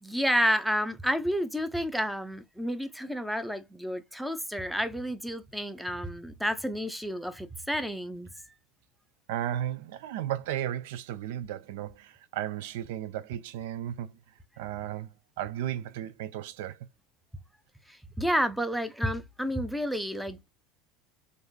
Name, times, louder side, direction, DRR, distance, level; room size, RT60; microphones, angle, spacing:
voice 1, 0.0-8.3 18.2-20.5, equal, ahead, 0.6 m, -30 dB
voice 2, 9.3-14.2 14.6-16.9, right 11 dB, 70° right, 0.3 m, -35 dB
3.4 x 2.5 x 2.7 m
hypercardioid pair, 85°, 0 cm